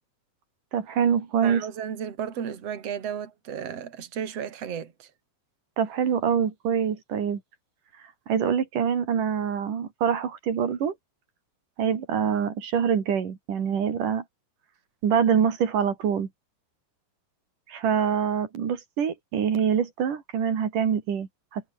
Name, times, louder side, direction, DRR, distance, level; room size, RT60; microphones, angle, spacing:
voice 1, 0.7-1.7 5.8-7.4 8.3-10.9 11.8-14.2 15.0-16.3 17.7-21.6, right 7 dB, 85° right, 4.4 m, -25 dB
voice 2, 1.4-5.1, right 8 dB, 50° right, 3.6 m, -34 dB
omnidirectional pair, 3.6 m